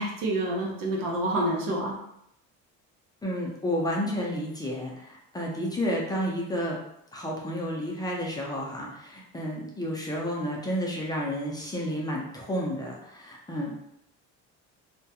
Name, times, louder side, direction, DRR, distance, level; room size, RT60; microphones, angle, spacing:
voice 1, 0.0-2.0, right 1 dB, 85° right, -2 dB, 0.8 m, -28 dB
voice 2, 3.2-6.8 7.1-13.7, equal, 10° left, -3 dB, 0.5 m, -31 dB
2.3 x 2.1 x 2.8 m, 0.78 s
cardioid pair, 115°, 32 cm